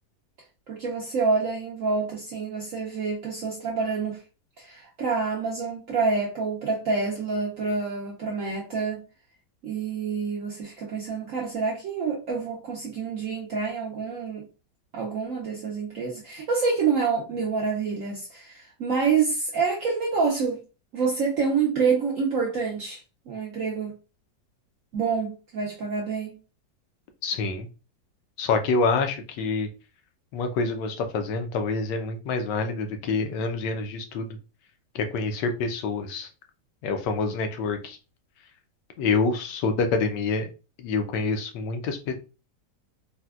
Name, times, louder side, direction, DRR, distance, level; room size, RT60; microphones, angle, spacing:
voice 1, 0.7-4.2 4.6-9.0 9.6-14.5 14.9-20.6 20.9-23.0 23.3-24.0 24.9-26.4, right 5 dB, 75° right, 0.7 m, -27 dB
voice 2, 27.2-27.7 28.4-29.7 30.3-34.4 34.9-36.3 36.8-38.0 39.0-40.5 40.8-42.1, left 4 dB, 75° left, 1.2 m, -27 dB
4.1 x 2.1 x 2.3 m
omnidirectional pair, 2.0 m